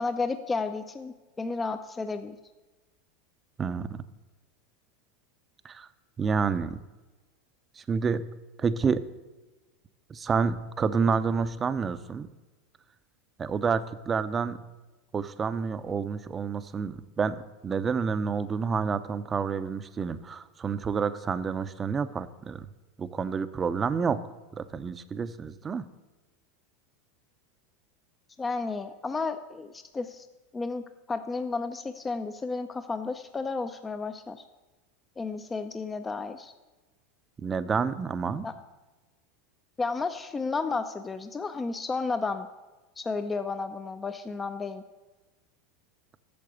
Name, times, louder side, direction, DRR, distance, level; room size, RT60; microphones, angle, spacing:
voice 1, 0.0-2.4 28.4-30.3 30.5-34.4 35.2-36.5 38.4-38.5 39.8-42.5 43.0-44.8, left 4 dB, 20° left, 8 dB, 0.5 m, -32 dB
voice 2, 3.6-4.0 5.6-5.9 6.2-6.8 7.8-8.3 8.6-9.0 10.1-12.3 13.4-14.6 15.1-22.7 23.0-24.2 24.5-25.9 37.4-38.5, right 5 dB, 25° right, 13 dB, 0.6 m, -29 dB
8.6 x 6.6 x 8.0 m, 1.2 s
hypercardioid pair, 110°, 0 cm